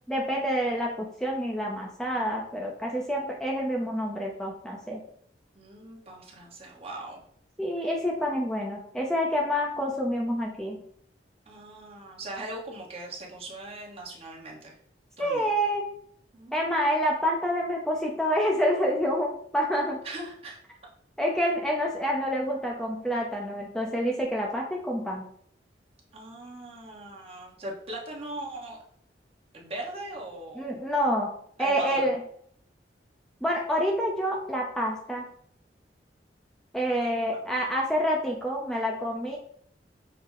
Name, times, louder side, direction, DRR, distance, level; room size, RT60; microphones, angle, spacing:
voice 1, 0.1-5.0 7.6-10.8 15.2-15.8 16.5-20.0 21.2-25.2 30.6-31.3 31.6-32.2 33.4-35.2 36.7-39.4, equal, 5° left, -2 dB, 0.4 m, -27 dB
voice 2, 5.5-7.2 11.5-14.8 15.2-15.5 16.3-16.9 20.0-20.6 26.1-28.8 29.5-30.7 31.6-32.1 37.3-37.4 39.3-39.4, right 1 dB, 35° right, -2 dB, 1.0 m, -40 dB
5.7 x 2.0 x 3.6 m, 0.64 s
head